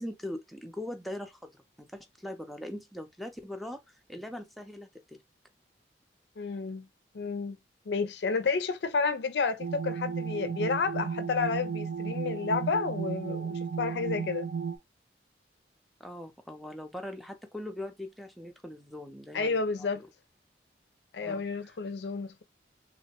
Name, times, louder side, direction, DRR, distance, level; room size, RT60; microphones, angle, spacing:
voice 1, 0.0-1.5 1.8-5.2 16.0-20.1 21.2-21.7, left 1 dB, ahead, 0.5 m, -41 dB
voice 2, 6.4-6.9 7.1-7.6 7.9-14.5 19.3-20.0 21.1-22.4, left 4 dB, 70° left, 0.4 m, -31 dB
sound 1, 9.6-14.8, right 6 dB, 70° right, 0.4 m, -34 dB
3.0 x 2.1 x 2.8 m
head